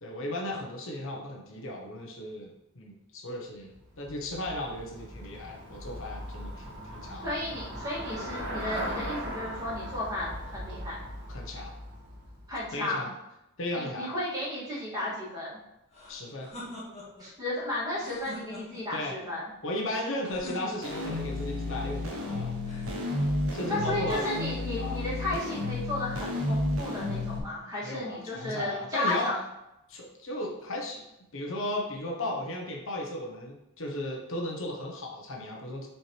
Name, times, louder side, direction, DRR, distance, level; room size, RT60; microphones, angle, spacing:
voice 1, 0.0-3.7 4.0-7.3 11.3-11.7 12.7-13.1 13.6-14.1 16.1-16.5 18.9-19.2 19.6-22.5 23.5-24.2 24.8-25.0 27.8-29.3 29.9-31.0 31.3-35.9, left 1 dB, 65° left, 0 dB, 1.2 m, -35 dB
Traffic noise roadway noise / Bicycle, 3.6-12.8, equal, 60° right, 1.8 m, -39 dB
voice 2, 7.2-11.0 12.5-13.1 13.8-15.6 17.2-19.5 23.7-29.4, left 1 dB, 20° right, -8 dB, 2.5 m, -34 dB
sound 1, 15.9-17.3 17.9-19.0 20.3-21.2 22.6-23.5, left 1 dB, 30° left, 2.2 m, -44 dB
sound 2, 20.8-27.4, left 2 dB, 80° right, 1.2 m, -32 dB
7.4 x 4.5 x 3.4 m, 0.90 s
head